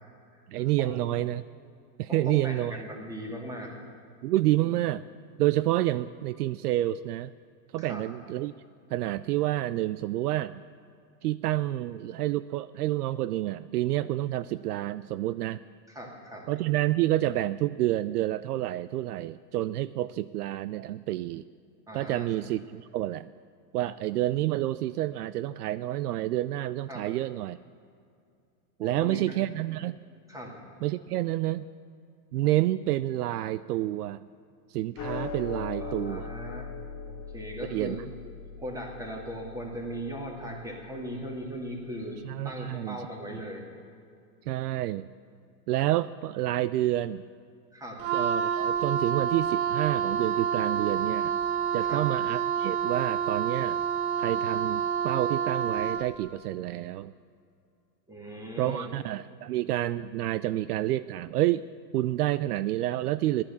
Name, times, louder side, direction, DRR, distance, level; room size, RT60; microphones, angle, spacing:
voice 1, 0.5-1.4 2.0-2.8 4.2-5.1 5.4-7.3 7.7-8.5 8.9-10.6 11.2-15.6 16.5-21.4 21.9-23.3 23.7-27.6 28.8-30.0 30.8-31.7 32.3-34.2 34.7-36.3 37.7-38.0 42.2-43.0 44.5-45.1 45.7-47.2 48.1-51.4 51.7-53.8 54.2-57.1 58.6-61.7 61.9-63.4, right 15 dB, 70° right, 16 dB, 0.5 m, -29 dB
voice 2, 2.1-3.7 4.6-4.7 7.8-8.0 15.9-16.5 21.9-22.3 26.9-27.1 28.8-29.4 30.3-30.6 35.8-36.7 37.1-38.1 38.6-42.2 42.4-43.7 47.7-48.0 51.8-52.0 58.1-58.9, equal, 5° right, 0 dB, 2.6 m, -38 dB
sound 1, 35.0-41.5, left 5 dB, 30° left, 1.2 m, -40 dB
Wind instrument woodwind instrument, 48.0-56.2, right 7 dB, 50° right, 1.2 m, -28 dB
14.5 x 11.5 x 7.2 m, 2.4 s
hypercardioid pair, 135°, 49 cm